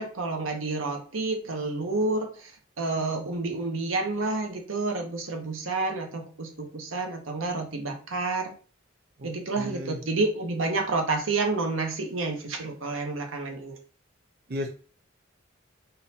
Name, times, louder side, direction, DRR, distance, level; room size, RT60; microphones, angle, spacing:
voice 1, 0.0-2.5 2.8-8.5 9.2-13.8, right 3 dB, 85° right, 3 dB, 1.0 m, -29 dB
voice 2, 9.6-10.0 14.5-14.7, left 1 dB, 50° right, 2 dB, 0.6 m, -33 dB
3.9 x 2.7 x 4.1 m, 0.40 s
head